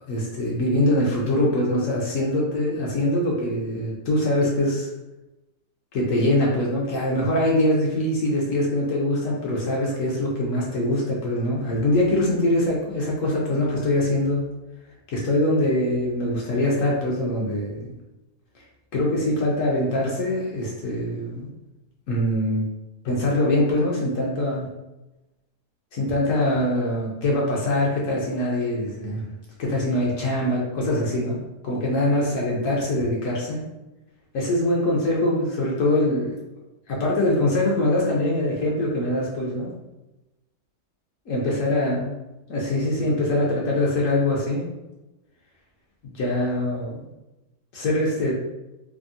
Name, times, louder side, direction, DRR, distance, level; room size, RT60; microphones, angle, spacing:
voice 1, 0.1-4.9 5.9-14.5 15.1-17.9 18.9-21.5 22.1-22.6 23.0-24.7 25.9-29.3 29.6-33.6 34.3-36.3 36.9-39.7 41.3-42.1 42.5-44.7 46.0-47.1 47.7-48.3, left 1 dB, 65° left, -3 dB, 0.9 m, -23 dB
3.5 x 2.0 x 2.5 m, 1.0 s
omnidirectional pair, 1.7 m